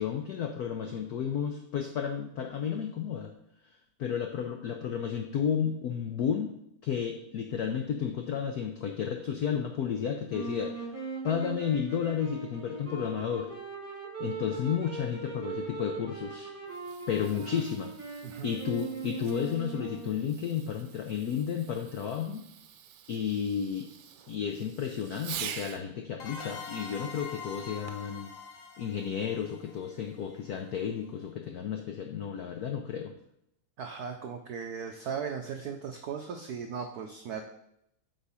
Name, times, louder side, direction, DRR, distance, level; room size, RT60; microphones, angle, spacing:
voice 1, 0.0-3.3 4.0-6.5 6.8-10.7 11.2-13.5 14.2-16.5 17.1-17.9 18.4-22.4 23.1-23.9 24.3-28.3 28.8-33.1, left 8 dB, 90° left, 4 dB, 0.8 m, -32 dB
sound 1, 10.3-20.2, right 4 dB, 15° right, 2.3 m, -40 dB
Fireworks, 16.5-25.9 27.9-28.2 28.9-29.0, right 9 dB, 70° right, 1.2 m, -46 dB
sound 2, 26.2-30.7, left 5 dB, 55° left, 0.9 m, -44 dB
voice 2, 33.8-37.4, right 6 dB, 90° right, 5 dB, 0.8 m, -37 dB
8.1 x 3.8 x 5.6 m, 0.77 s
omnidirectional pair, 2.4 m